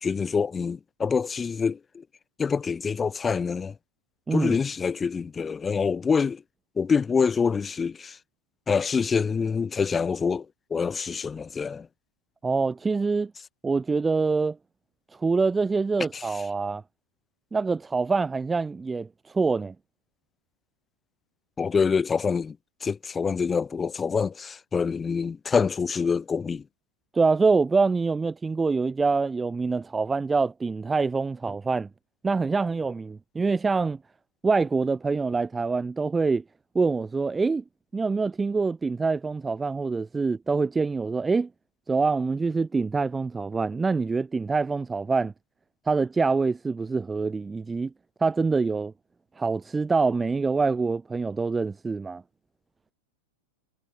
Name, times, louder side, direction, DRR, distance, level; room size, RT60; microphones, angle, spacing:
voice 1, 0.0-2.0 2.4-3.7 4.3-6.4 6.8-8.2 8.7-11.9 16.1-16.2 21.6-22.6 22.8-26.6, left 5 dB, 15° left, 1.0 m, -26 dB
voice 2, 12.4-13.3 13.6-14.6 15.2-16.8 17.5-19.7 27.1-31.9 32.2-34.0 34.4-36.4 36.7-37.6 37.9-41.5 41.9-45.3 45.9-47.9 48.2-48.9 49.4-52.2, right 4 dB, 10° right, 0.4 m, -25 dB
figure-of-eight pair, 90°, 0 cm